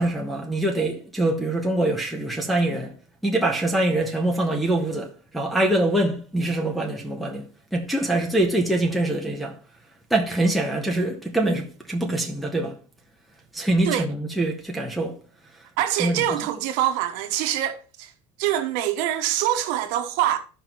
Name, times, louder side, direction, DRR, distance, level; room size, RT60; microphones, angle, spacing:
voice 1, 0.0-2.9 3.2-9.6 10.1-12.7 13.5-15.2 16.0-16.4, right 1 dB, ahead, 1.1 m, -24 dB
voice 2, 15.8-18.1 18.4-20.4, right 11 dB, 55° right, 1.2 m, -24 dB
14.0 x 5.6 x 3.0 m
cardioid pair, 165°, 16 cm